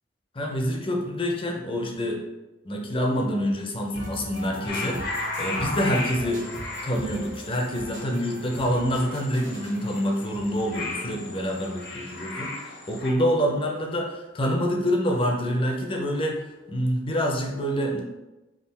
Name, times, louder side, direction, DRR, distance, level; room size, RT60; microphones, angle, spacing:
voice 1, 0.3-2.2 2.6-6.4 6.8-16.4 16.7-18.0, equal, 30° left, 1 dB, 0.6 m, -26 dB
sound 1, 3.9-11.8, equal, 80° right, 1.1 m, -40 dB
sound 2, 4.7-13.1, left 3 dB, 65° left, 0.9 m, -36 dB
3.7 x 2.4 x 4.1 m, 1.1 s
head